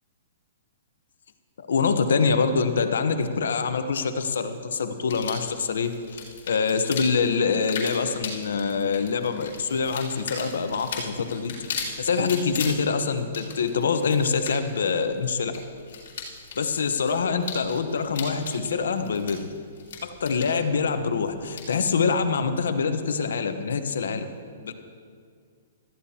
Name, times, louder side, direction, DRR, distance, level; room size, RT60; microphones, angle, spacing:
voice 1, 1.6-6.2 6.5-11.6 12.0-15.5 16.6-19.5 20.0-24.3 24.6-24.7, left 5 dB, 85° left, 8 dB, 1.0 m, -25 dB
sound 1, 5.0-22.2, left 5 dB, 65° left, 3.0 m, -39 dB
18.0 x 14.0 x 2.9 m, 2.1 s
hypercardioid pair, 155°, 0 cm